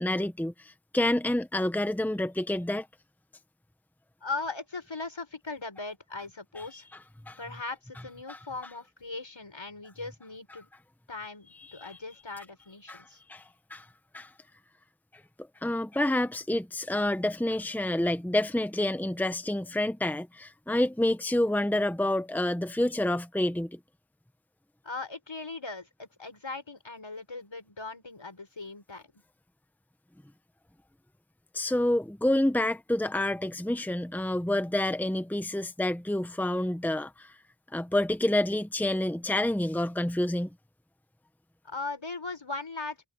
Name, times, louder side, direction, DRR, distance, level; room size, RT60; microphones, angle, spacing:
voice 1, 0.0-2.9 6.6-6.8 7.3-7.4 8.3-8.4 11.7-11.9 12.9-13.0 13.3-13.4 13.7-13.8 14.1-14.3 15.6-23.8 31.5-37.3 37.7-40.5, left 1 dB, 5° left, 1.1 m, -28 dB
voice 2, 4.2-6.9 7.4-10.7 11.1-13.2 24.8-29.1 41.6-43.1, left 3 dB, 75° left, 6.5 m, -39 dB
wide cardioid pair, 45°, 46 cm